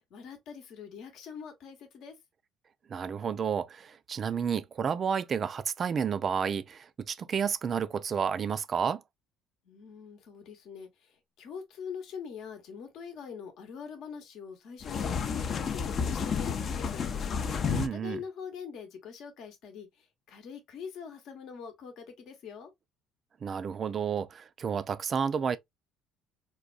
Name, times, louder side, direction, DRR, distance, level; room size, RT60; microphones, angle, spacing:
voice 1, 0.1-2.2 9.6-17.0 17.9-22.7, left 6 dB, 65° left, 0.8 m, -44 dB
voice 2, 2.9-9.0 17.7-18.2 23.4-25.6, right 7 dB, 45° right, 0.3 m, -31 dB
sound 1, 14.8-17.9, left 6 dB, 50° left, 0.4 m, -31 dB
3.7 x 2.2 x 2.3 m
supercardioid pair, 70°, 0 cm